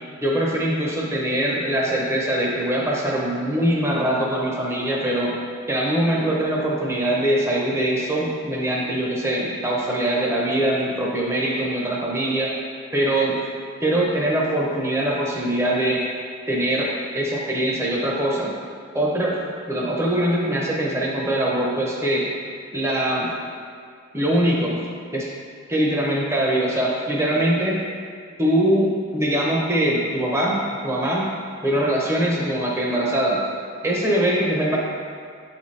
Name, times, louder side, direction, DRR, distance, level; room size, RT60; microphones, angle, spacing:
voice 1, 0.2-5.3 5.7-12.5 12.9-13.4 13.8-16.0 16.5-16.9 17.1-18.5 18.9-19.3 19.7-22.2 22.7-23.3 24.1-24.8 25.1-25.3 25.7-27.8 28.4-31.3 31.6-33.4 33.8-34.8, right 1 dB, 15° right, -4 dB, 0.7 m, -22 dB
7.7 x 4.1 x 3.2 m, 2.2 s
head